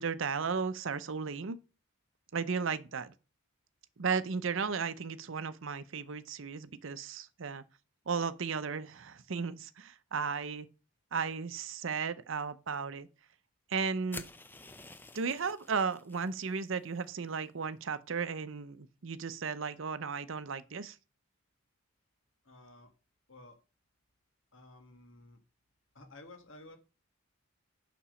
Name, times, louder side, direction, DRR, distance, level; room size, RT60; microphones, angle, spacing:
voice 1, 0.0-1.6 2.3-3.1 4.0-7.6 8.1-10.7 11.1-13.1 13.7-14.3 15.1-21.0, right 5 dB, 60° right, 0.6 m, -35 dB
sound 1, 14.1-16.3, left 2 dB, 10° left, 0.5 m, -48 dB
voice 2, 22.4-22.9 23.3-23.6 24.5-25.4 25.9-26.8, left 2 dB, 60° left, 1.6 m, -53 dB
7.1 x 6.0 x 5.0 m
head